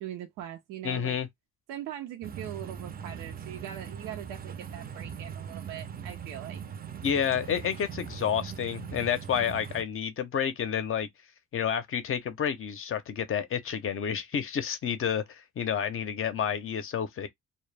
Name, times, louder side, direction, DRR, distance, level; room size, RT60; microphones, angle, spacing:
voice 1, 0.0-1.2 1.7-6.6, right 11 dB, 90° right, 0.5 m, -41 dB
voice 2, 0.8-1.3 7.0-11.1 11.5-17.3, left 8 dB, 45° left, 0.5 m, -30 dB
sound 1, 2.2-9.8, right 8 dB, 30° right, 0.4 m, -40 dB
2.1 x 2.0 x 3.2 m
cardioid pair, 90°, 30 cm